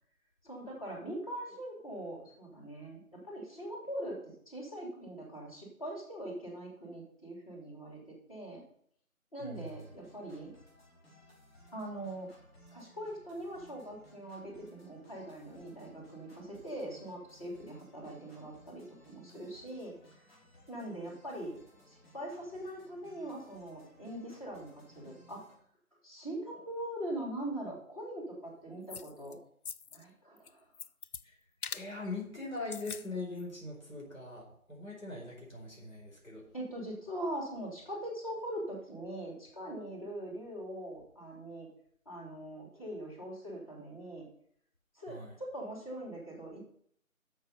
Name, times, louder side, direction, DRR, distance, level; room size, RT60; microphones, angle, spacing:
voice 1, 0.4-4.2 4.5-8.6 9.3-10.5 11.7-12.3 12.7-19.9 20.7-21.6 21.9-25.4 26.0-29.4 29.9-30.6 36.5-41.7 42.0-44.2 44.9-46.6, right 1 dB, 25° left, -5 dB, 3.2 m, -42 dB
voice 2, 9.4-9.7 31.2-31.3 31.7-36.4 45.1-45.4, left 3 dB, 65° left, -3 dB, 4.6 m, -41 dB
sound 1, 9.5-25.5, equal, 45° left, 5.5 m, -61 dB
sound 2, 28.9-29.3 29.6-30.0 30.4-31.2 31.6-31.9 32.6-33.1 33.4-33.5, left 6 dB, 90° left, 0.6 m, -42 dB
11.0 x 6.9 x 5.4 m, 0.65 s
figure-of-eight pair, 170°, 43 cm